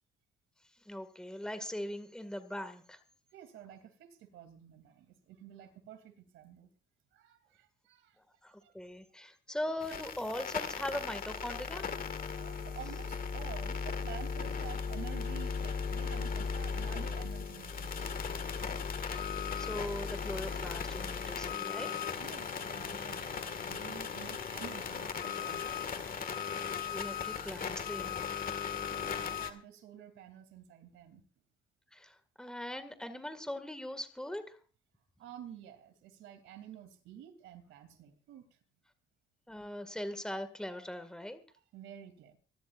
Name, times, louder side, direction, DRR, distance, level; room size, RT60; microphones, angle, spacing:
voice 1, 0.9-3.0 8.4-11.9 19.1-21.9 26.9-28.3 31.9-34.6 39.5-41.4, left 1 dB, 5° left, 9 dB, 2.0 m, -40 dB
voice 2, 3.3-6.7 7.1-8.2 8.6-8.7 12.3-18.1 22.2-25.8 28.9-31.2 35.2-38.5 41.7-42.4, right 10 dB, 90° right, 7 dB, 3.0 m, -50 dB
sound 1, 9.8-29.5, left 6 dB, 45° left, 1.9 m, -37 dB
25.5 x 13.0 x 2.6 m, 0.38 s
cardioid pair, 90°, 20 cm